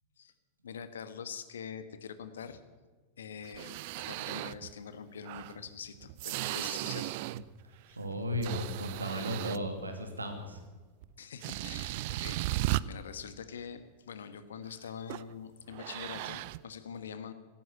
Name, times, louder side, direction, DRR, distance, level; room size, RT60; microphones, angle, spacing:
voice 1, 0.6-2.6 3.2-7.2 7.9-8.0 11.2-17.3, left 7 dB, 65° left, 12 dB, 1.3 m, -44 dB
sound 1, 3.4-4.7 5.2-7.6 7.9-9.9 11.0-11.1 11.4-12.8 15.1-15.3 15.7-16.6, right 18 dB, 50° right, 0.4 m, -36 dB
voice 2, 8.0-10.6, equal, 80° right, 5 dB, 2.5 m, -35 dB
17.0 x 14.5 x 5.6 m, 1.4 s
figure-of-eight pair, 90°, 0 cm